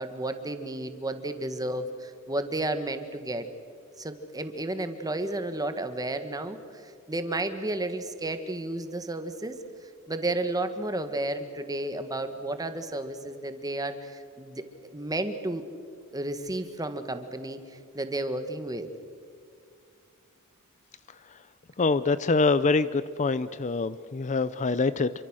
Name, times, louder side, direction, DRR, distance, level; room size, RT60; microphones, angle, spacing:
voice 1, 0.0-3.5 4.0-9.6 10.1-15.6 16.1-17.6 17.9-18.9, right 2 dB, 15° right, 8 dB, 1.6 m, -32 dB
voice 2, 21.8-25.1, left 3 dB, 35° left, 15 dB, 0.5 m, -25 dB
28.0 x 24.0 x 6.3 m, 2.3 s
head